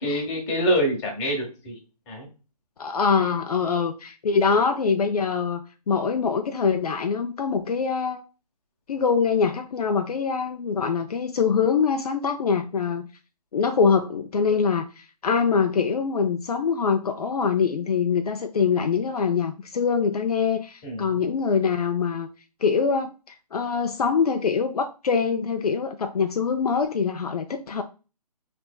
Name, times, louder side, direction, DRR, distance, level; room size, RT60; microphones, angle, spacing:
voice 1, 0.0-1.8 2.1-2.3 20.8-21.1, equal, 20° left, 1.1 m, -25 dB
voice 2, 2.8-8.2 8.9-13.1 13.5-22.3 22.6-27.8, left 5 dB, 65° left, 0.5 m, -24 dB
4.3 x 3.4 x 2.2 m
figure-of-eight pair, 150°, 21 cm